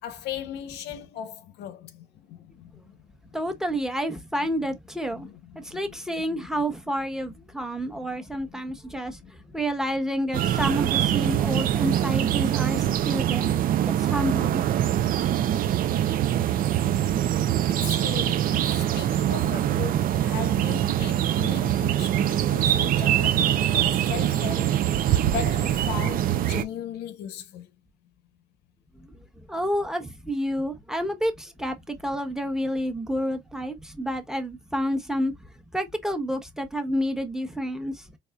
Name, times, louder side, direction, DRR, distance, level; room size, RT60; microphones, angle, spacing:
voice 1, 0.0-3.0 3.7-3.8 4.4-4.7 5.1-6.5 7.8-8.7 9.2-9.3 17.7-24.8 25.3-27.7, left 9 dB, 80° left, 0.7 m, -38 dB
voice 2, 3.3-5.3 5.6-13.5 13.8-14.6 29.0-29.2 29.5-35.3 35.7-38.1, equal, 5° right, 1.0 m, -29 dB
sound 1, 10.3-26.6, right 11 dB, 55° right, 0.5 m, -23 dB
4.1 x 3.4 x 2.3 m
cardioid pair, 110°, 17 cm